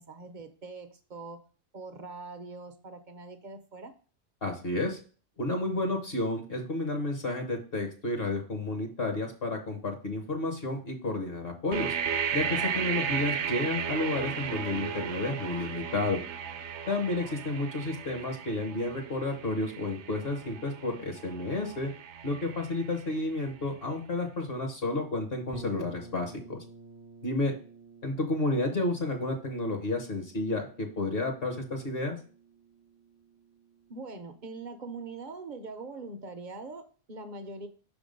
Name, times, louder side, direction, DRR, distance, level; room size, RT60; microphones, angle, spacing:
voice 1, 0.0-1.4 1.7-3.9 33.9-37.7, right 3 dB, 50° right, 8 dB, 0.7 m, -42 dB
voice 2, 4.4-5.0 5.4-11.9 12.3-16.2 16.9-21.9 22.2-26.6 27.2-27.5 28.0-32.2, left 2 dB, 50° left, 4 dB, 1.3 m, -31 dB
sound 1, 11.7-23.5, right 7 dB, 70° right, 0.9 m, -35 dB
sound 2, 25.5-35.2, right 2 dB, 10° right, 0.6 m, -52 dB
5.9 x 3.6 x 5.1 m, 0.39 s
omnidirectional pair, 1.3 m